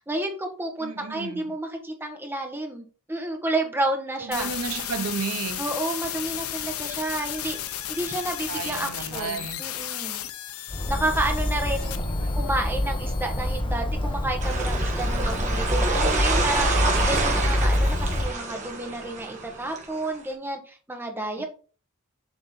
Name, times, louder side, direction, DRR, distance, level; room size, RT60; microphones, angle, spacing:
voice 1, 0.0-4.5 5.6-10.2 10.9-12.0 12.3-21.4, right 1 dB, 10° right, 1.2 m, -30 dB
voice 2, 0.8-1.6 4.2-5.6 8.5-9.6 11.7-12.4 21.4-21.5, right 5 dB, 85° right, 0.6 m, -33 dB
sound 1, 4.3-13.6, left 11 dB, 75° left, 0.6 m, -34 dB
Bird, 10.7-18.3, left 1 dB, 25° left, 0.9 m, -26 dB
sound 2, 14.4-20.2, right 3 dB, 35° right, 1.5 m, -28 dB
7.2 x 3.8 x 3.9 m
head